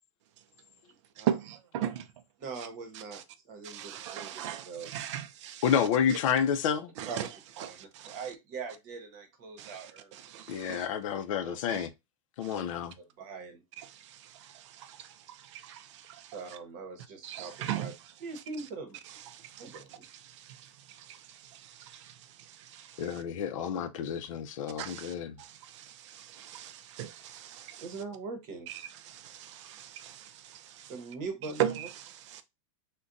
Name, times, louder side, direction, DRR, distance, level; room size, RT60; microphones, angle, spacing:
voice 1, 2.4-4.9 6.1-6.2 7.1-7.3 7.6-10.3 11.1-11.6 12.5-12.6 13.0-13.6 16.3-17.9 18.2-19.0 19.6-20.0 27.8-28.7 30.9-31.9, right 4 dB, 40° right, 0.9 m, -42 dB
voice 2, 3.6-5.6 7.0-7.3 9.6-9.8 10.3-10.9 11.7-11.9 12.4-12.5 14.4-16.3 17.2-17.9 19.5-19.6 20.4-20.6 21.1-21.2 21.5-22.1 22.7-23.0 24.8-27.8 29.1-30.9 31.6-31.9 32.3-32.4, right 10 dB, 60° right, 0.4 m, -37 dB
voice 3, 5.6-6.9 10.5-11.9 12.4-12.9 23.0-25.3, left 8 dB, 70° left, 0.5 m, -29 dB
2.4 x 2.2 x 3.8 m
supercardioid pair, 170°, 17 cm